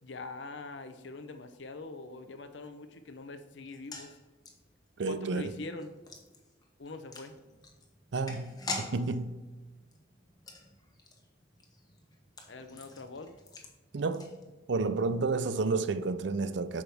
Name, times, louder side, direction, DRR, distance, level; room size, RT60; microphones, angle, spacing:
voice 1, 0.0-4.2 5.0-6.0 6.8-7.3 12.5-13.3, left 3 dB, 70° left, 0.7 m, -43 dB
sound 1, 3.6-14.9 15.1-15.2 15.5-15.7, left 3 dB, 20° left, 1.1 m, -46 dB
voice 2, 5.0-5.5 8.1-8.5 8.8-9.4 13.9-14.3 14.7-16.8, right 3 dB, 65° right, 0.5 m, -30 dB
8.4 x 6.1 x 3.5 m
head